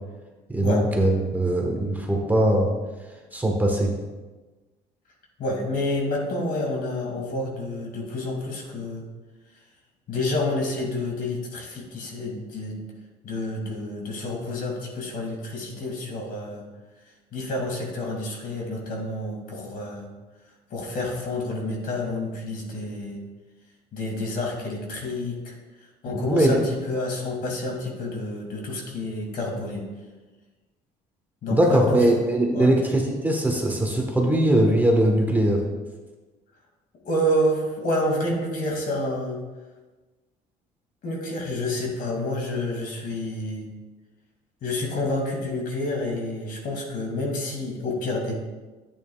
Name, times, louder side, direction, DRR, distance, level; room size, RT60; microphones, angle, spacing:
voice 1, 0.5-2.7 3.3-3.9 26.1-26.6 31.5-35.6, right 1 dB, 10° right, 0 dB, 1.3 m, -21 dB
voice 2, 5.4-9.1 10.1-12.8 13.2-16.6 17.3-20.1 20.7-23.2 23.9-25.6 26.0-29.8 31.4-32.0 32.5-32.7 37.0-39.4 41.0-43.7 44.6-48.3, left 1 dB, 55° left, 0 dB, 2.4 m, -29 dB
10.5 x 8.8 x 2.4 m, 1.2 s
cardioid pair, 110°, 17 cm